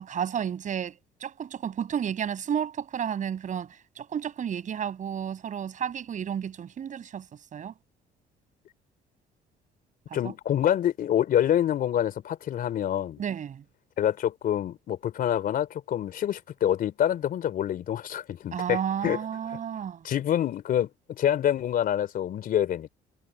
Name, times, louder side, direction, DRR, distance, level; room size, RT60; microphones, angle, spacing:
voice 1, 0.0-7.7 10.2-10.3 13.2-13.6 18.5-20.0, right 8 dB, 50° right, 7.4 m, -32 dB
voice 2, 10.1-13.2 14.0-19.2 20.0-22.9, left 10 dB, 60° left, 3.8 m, -26 dB
cardioid pair, 110°, 17 cm